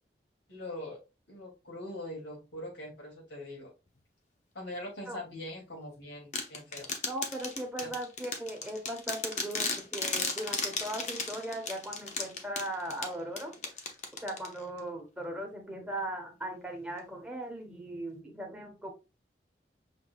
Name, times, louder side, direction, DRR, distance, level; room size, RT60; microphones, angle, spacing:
voice 1, 0.5-1.0 1.3-3.7 4.5-6.9 7.8-7.9, left 1 dB, 90° left, -2 dB, 2.7 m, -42 dB
sound 1, 6.3-14.8, left 4 dB, 40° left, 0.8 m, -36 dB
voice 2, 7.1-13.5 13.9-18.9, right 1 dB, 5° right, 1 dB, 1.0 m, -38 dB
6.0 x 3.6 x 2.3 m, 0.28 s
head